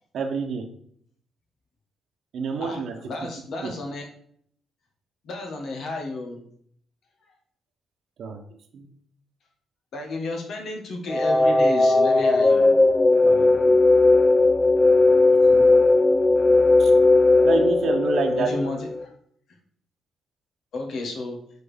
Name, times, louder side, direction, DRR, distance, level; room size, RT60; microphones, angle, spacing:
voice 1, 0.1-0.6 2.3-2.9 3.6-3.7 8.2-8.4 8.7-8.9 13.2-13.7 15.5-15.6 16.8-16.9 17.4-18.5, right 5 dB, 65° right, 4 dB, 0.9 m, -28 dB
voice 2, 2.6-4.1 5.2-6.4 9.9-12.7 18.4-19.1 20.7-21.4, left 2 dB, 65° left, 2 dB, 1.5 m, -32 dB
sound 1, 11.1-19.0, left 2 dB, 25° left, 0.5 m, -17 dB
4.8 x 4.2 x 5.0 m, 0.64 s
cardioid pair, 90°, 0 cm